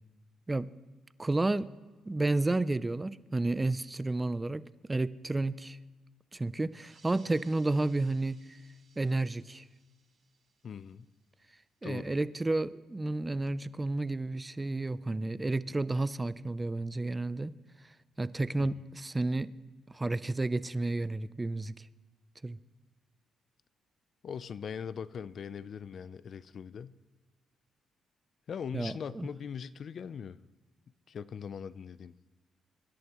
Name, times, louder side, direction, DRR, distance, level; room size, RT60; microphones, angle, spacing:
voice 1, 1.2-1.7 2.1-5.8 6.3-8.6 9.0-9.6 11.8-17.5 18.2-19.5 19.9-21.9 22.4-22.6 28.7-29.3, right 2 dB, 20° right, 17 dB, 0.5 m, -31 dB
sound 1, 6.7-11.8, right 4 dB, 65° right, 5.1 m, -64 dB
voice 2, 10.6-11.1 11.8-12.2 18.6-18.7 24.2-27.0 28.5-30.4 31.1-32.1, left 7 dB, 55° left, 15 dB, 0.5 m, -41 dB
24.5 x 11.0 x 3.1 m, 1.3 s
cardioid pair, 90°, 0 cm